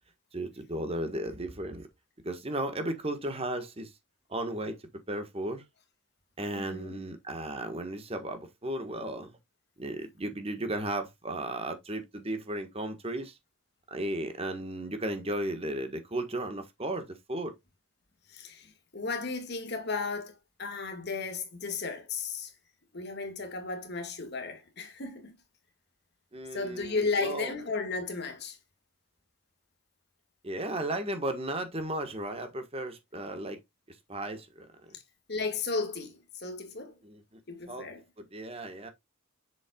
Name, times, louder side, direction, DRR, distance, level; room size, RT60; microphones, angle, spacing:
voice 1, 0.3-1.9 2.2-3.9 4.3-4.8 5.1-5.6 6.4-9.3 9.8-13.4 13.9-17.6 26.3-27.5 30.4-33.6 34.1-35.0 37.0-37.2 37.7-37.9 38.2-38.9, right 1 dB, 30° right, 1.5 m, -35 dB
voice 2, 6.5-7.0 18.3-22.5 22.9-25.4 26.5-28.6 34.9-35.0 35.3-37.0 37.5-38.0, left 4 dB, 50° left, 2.0 m, -34 dB
7.6 x 6.6 x 2.4 m
head